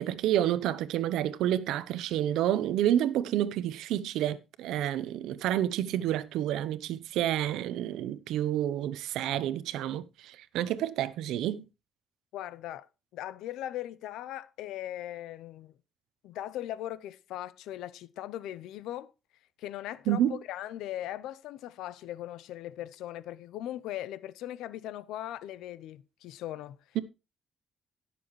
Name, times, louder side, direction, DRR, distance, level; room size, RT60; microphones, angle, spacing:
voice 1, 0.0-11.7 20.1-20.4, right 11 dB, 90° right, 0.7 m, -29 dB
voice 2, 12.3-12.9 13.1-15.7 16.2-19.1 19.6-26.8, left 13 dB, 90° left, 0.5 m, -39 dB
17.0 x 6.9 x 3.1 m
cardioid pair, 90°, 0 cm